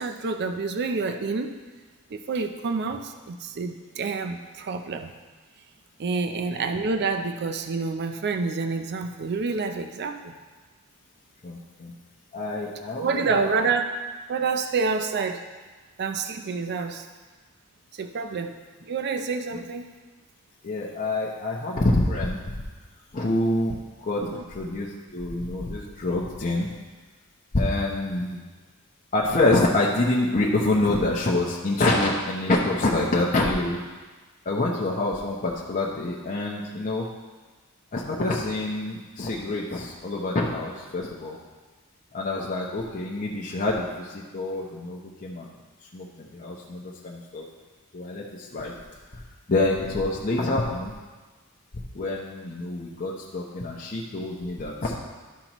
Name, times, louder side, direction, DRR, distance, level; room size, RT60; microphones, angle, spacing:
voice 1, 0.0-1.5 2.1-5.1 6.0-10.3 13.0-13.9 14.3-15.4 16.0-17.1 18.0-18.6 18.8-19.8 24.2-24.4, right 4 dB, 50° right, 6 dB, 0.5 m, -28 dB
voice 2, 11.4-11.9 12.3-13.5 20.6-22.4 23.1-26.7 27.5-28.4 29.1-33.8 34.4-37.1 37.9-41.4 42.1-45.6 45.9-47.5 47.9-48.8 49.1-49.2 49.5-50.9 51.9-54.9, left 2 dB, 35° left, -4 dB, 0.8 m, -26 dB
12.0 x 5.9 x 3.0 m, 1.3 s
head